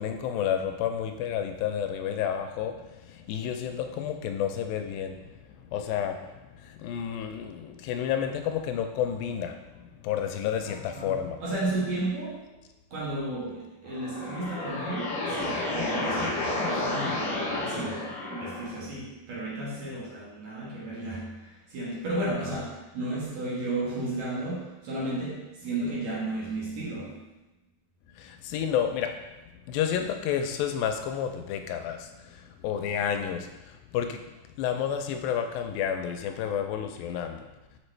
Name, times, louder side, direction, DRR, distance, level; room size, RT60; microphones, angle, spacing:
voice 1, 0.0-5.3 5.6-9.6 10.0-11.4 28.2-29.2 29.7-34.2 34.6-37.4, left 9 dB, 90° left, 5 dB, 2.4 m, -30 dB
voice 2, 10.7-12.6 12.9-27.3, right 2 dB, 60° right, -6 dB, 2.5 m, -33 dB
sound 1, 13.8-18.8, left 2 dB, 65° left, 1.3 m, -31 dB
6.7 x 5.2 x 3.3 m, 1.0 s
omnidirectional pair, 4.0 m